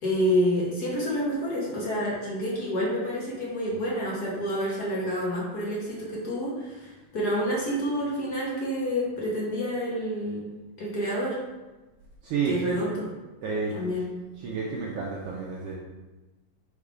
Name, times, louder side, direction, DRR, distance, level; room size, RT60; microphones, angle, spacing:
voice 1, 0.0-10.5 10.8-11.4 12.4-13.0 13.7-14.0, equal, 50° left, -4 dB, 1.2 m, -28 dB
voice 2, 12.2-12.8 13.4-13.8 14.3-15.7, right 5 dB, 70° right, -4 dB, 1.4 m, -30 dB
5.4 x 3.5 x 4.9 m, 1.1 s
omnidirectional pair, 3.3 m